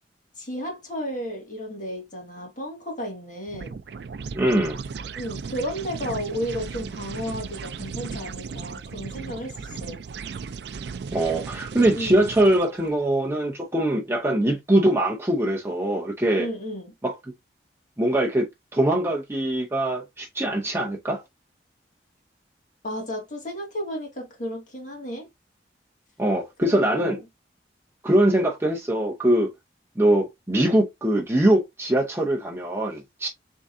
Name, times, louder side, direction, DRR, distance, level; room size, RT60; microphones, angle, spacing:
voice 1, 0.4-3.8 5.2-10.0 12.0-12.2 16.4-16.9 22.8-25.3 26.6-27.2, equal, 45° left, 2.0 m, -33 dB
sound 1, 3.5-12.9, right 5 dB, 65° right, 0.4 m, -36 dB
voice 2, 4.3-4.8 11.1-16.5 17.0-17.2 18.0-21.2 26.2-27.2 28.0-29.5 30.0-33.3, right 1 dB, 15° right, 0.7 m, -22 dB
3.8 x 3.6 x 2.6 m
head